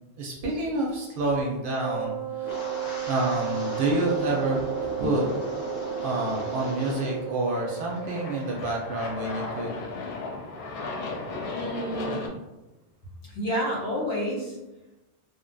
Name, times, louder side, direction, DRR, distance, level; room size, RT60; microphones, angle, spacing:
voice 1, 0.2-2.5 3.1-5.2 6.0-9.7, right 2 dB, 60° right, -2 dB, 0.6 m, -28 dB
Wind instrument woodwind instrument, 1.8-8.4, right 14 dB, 25° left, 0.9 m, -34 dB
Wind, 2.4-7.3 7.5-8.0 8.4-8.7, left 1 dB, 55° left, 1.0 m, -36 dB
Aircraft, 6.5-12.3, left 3 dB, 70° left, 0.3 m, -36 dB
voice 2, 11.5-12.3 13.2-14.6, equal, 90° left, -4 dB, 1.1 m, -30 dB
2.6 x 2.2 x 2.5 m, 1.0 s
omnidirectional pair, 1.2 m